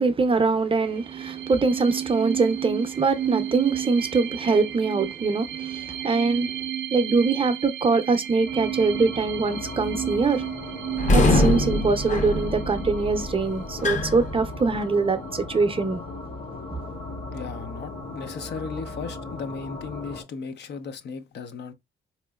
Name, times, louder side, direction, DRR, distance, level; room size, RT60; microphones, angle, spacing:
voice 1, 0.0-6.5 6.9-10.4 11.1-16.0, right 4 dB, 25° right, 0.6 m, -23 dB
sound 1, 0.8-14.1, right 11 dB, 75° right, 0.4 m, -33 dB
sound 2, 8.4-20.2, left 2 dB, 85° left, 1.7 m, -37 dB
sound 3, 11.0-14.8, left 1 dB, 40° left, 0.8 m, -24 dB
voice 2, 17.3-21.7, left 5 dB, 60° left, 0.6 m, -36 dB
4.0 x 3.0 x 2.3 m
cardioid pair, 90°, 20 cm